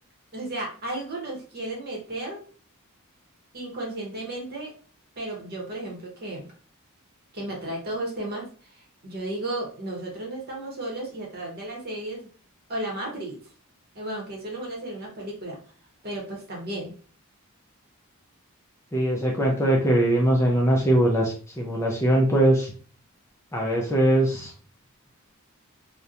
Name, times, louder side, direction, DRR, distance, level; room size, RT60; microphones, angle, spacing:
voice 1, 0.3-2.4 3.5-4.7 5.2-6.5 7.3-12.3 12.7-13.4 13.9-15.6 16.0-16.9, right 1 dB, 45° right, -1 dB, 0.8 m, -34 dB
voice 2, 18.9-22.7 23.5-24.5, right 1 dB, 10° left, -2 dB, 0.4 m, -21 dB
2.8 x 2.1 x 2.4 m, 0.40 s
head